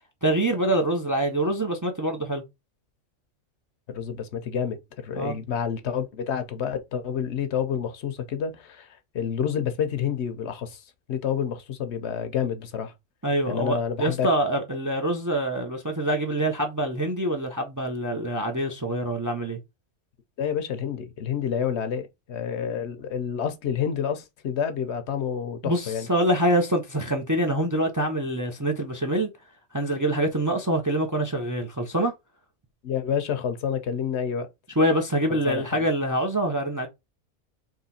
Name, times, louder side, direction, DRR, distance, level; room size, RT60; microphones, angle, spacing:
voice 1, 0.2-2.4 5.1-5.4 13.2-19.6 25.6-29.3 29.7-32.1 34.8-36.9, right 1 dB, 20° right, 0.5 m, -25 dB
voice 2, 3.9-10.8 11.1-12.9 13.5-14.3 20.4-26.1 32.8-34.5 35.5-35.6, left 8 dB, 70° left, 0.9 m, -29 dB
3.8 x 3.0 x 4.2 m
omnidirectional pair, 1.3 m